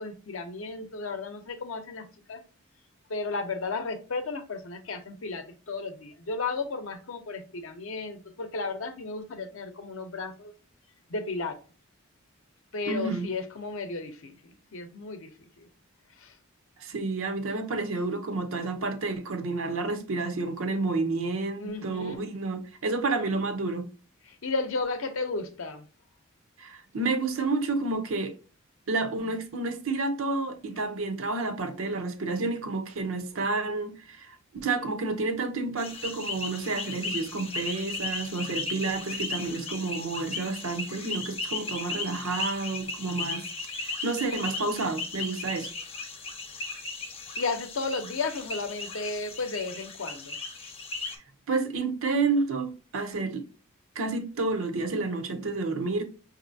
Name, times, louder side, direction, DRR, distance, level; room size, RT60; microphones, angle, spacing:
voice 1, 0.0-2.4 3.1-10.5 11.1-11.6 12.7-15.7 16.2-16.4 21.6-22.3 24.3-25.8 47.4-50.4, left 3 dB, 65° left, 0.6 m, -34 dB
voice 2, 12.9-13.3 16.8-23.9 26.6-28.4 28.9-34.4 34.6-43.5 43.8-45.7 51.5-53.4 54.0-56.0, right 3 dB, 70° right, 0.6 m, -30 dB
sound 1, 35.8-51.2, left 3 dB, 30° left, 0.7 m, -36 dB
5.2 x 2.7 x 2.6 m
head